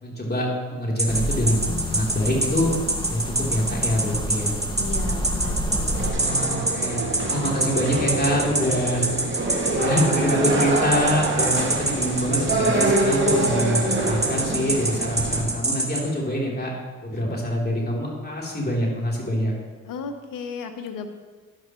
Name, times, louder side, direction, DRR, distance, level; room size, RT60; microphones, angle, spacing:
voice 1, 0.0-2.7 3.0-4.5 6.1-7.0 7.3-9.1 9.7-16.7 17.0-19.5, equal, 30° left, -3 dB, 3.6 m, -25 dB
sound 1, 1.0-16.0, right 2 dB, 20° right, 2.2 m, -24 dB
sound 2, 1.1-6.1, equal, 15° left, 1.9 m, -29 dB
voice 2, 4.8-6.2 6.5-6.9 19.8-21.1, left 5 dB, 75° left, 7 dB, 1.2 m, -35 dB
sound 3, 5.9-15.5, right 2 dB, 35° right, 2.3 m, -26 dB
11.0 x 11.0 x 3.2 m, 1.4 s
supercardioid pair, 55°, 33 cm